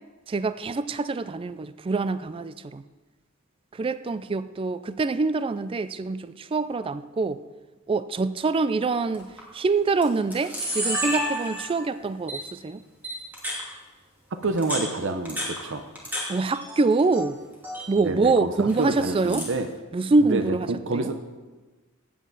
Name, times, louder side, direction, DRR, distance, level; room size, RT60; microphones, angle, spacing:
voice 1, 0.3-2.8 3.7-7.4 7.9-9.3 9.5-12.8 16.3-17.4 17.9-19.5 19.9-20.7 20.9-21.1, right 3 dB, 25° right, 13 dB, 0.3 m, -25 dB
Camera, 9.1-9.4 10.0-10.1 10.3-11.9 12.3-12.4 13.0-13.6 14.4-16.2 16.5-17.3 17.5-17.9 18.7-19.6, equal, 10° right, 2.5 m, -31 dB
voice 2, 14.3-15.8 18.0-19.7 20.3-21.2, right 3 dB, 60° right, 8 dB, 0.7 m, -28 dB
14.5 x 8.5 x 4.0 m, 1.2 s
head